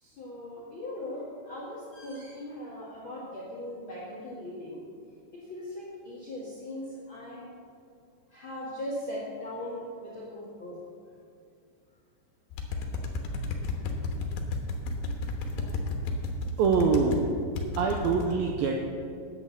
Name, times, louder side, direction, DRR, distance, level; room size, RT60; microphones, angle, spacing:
voice 1, 0.0-4.8 5.3-7.5 8.3-10.8 14.2-14.4, left 1 dB, 55° left, -5 dB, 1.3 m, -39 dB
sound 1, 12.5-17.2 17.6-18.3, left 3 dB, 85° left, 3.4 m, -32 dB
voice 2, 16.6-17.3 17.8-18.9, right 5 dB, 90° right, 2 dB, 2.1 m, -24 dB
10.5 x 8.4 x 7.1 m, 2.4 s
omnidirectional pair, 5.1 m